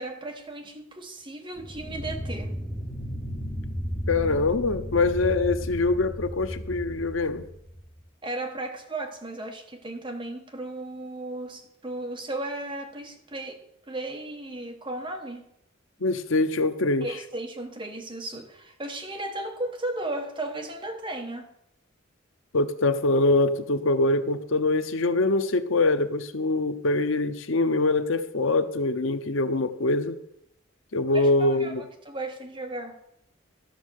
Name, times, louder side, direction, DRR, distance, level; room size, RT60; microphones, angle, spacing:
voice 1, 0.0-2.5 8.2-13.6 13.9-15.4 17.0-21.5 31.1-33.0, right 2 dB, 25° right, 1.4 m, -35 dB
sound 1, 1.5-8.0, equal, 5° left, 4.4 m, -34 dB
voice 2, 4.1-7.4 16.0-17.1 22.5-30.2 30.9-31.8, left 2 dB, 75° left, 0.7 m, -24 dB
13.0 x 6.4 x 6.4 m
head